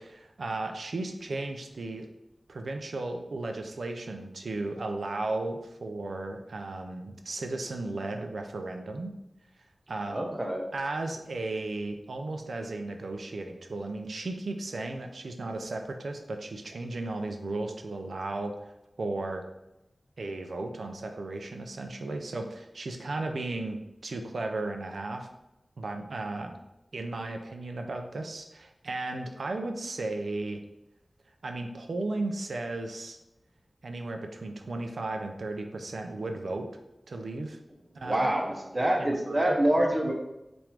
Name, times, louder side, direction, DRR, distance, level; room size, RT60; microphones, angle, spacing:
voice 1, 0.0-2.1 2.5-9.1 9.9-10.4 10.7-18.5 19.0-19.4 20.2-25.3 25.8-26.6 26.9-30.6 31.4-33.2 33.8-36.7 37.1-37.6 37.9-38.3 38.7-39.8, right 2 dB, 90° right, 5 dB, 0.5 m, -35 dB
voice 2, 10.1-10.6 38.0-40.1, right 1 dB, 35° right, 0 dB, 0.9 m, -26 dB
5.8 x 2.6 x 3.4 m, 0.92 s
wide cardioid pair, 60°, 0 cm